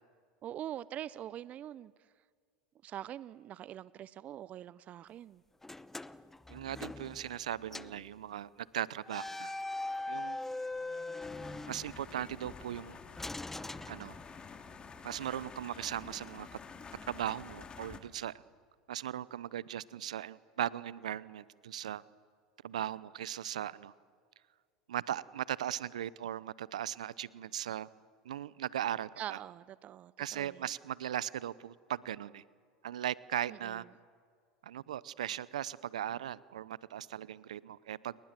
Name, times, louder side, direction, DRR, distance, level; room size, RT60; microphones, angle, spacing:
voice 1, 0.4-1.9 2.8-5.4 29.2-30.7 33.5-33.8, right 11 dB, 40° right, 20 dB, 0.6 m, -44 dB
sound 1, 5.6-7.4 7.7-8.0 9.1-12.3 13.2-14.6, left 2 dB, 10° left, 0.8 m, -41 dB
voice 2, 6.5-9.5 10.1-10.4 11.7-13.0 13.9-14.2 15.0-16.5 17.1-18.3 18.9-22.0 22.6-23.9 24.9-27.9 28.2-29.4 30.2-32.4 32.8-33.8 34.6-38.2, right 11 dB, 80° right, 20 dB, 0.7 m, -38 dB
sound 2, 11.2-18.0, left 5 dB, 25° left, 2.5 m, -49 dB
29.5 x 21.0 x 7.5 m, 2.1 s
hypercardioid pair, 85°, 4 cm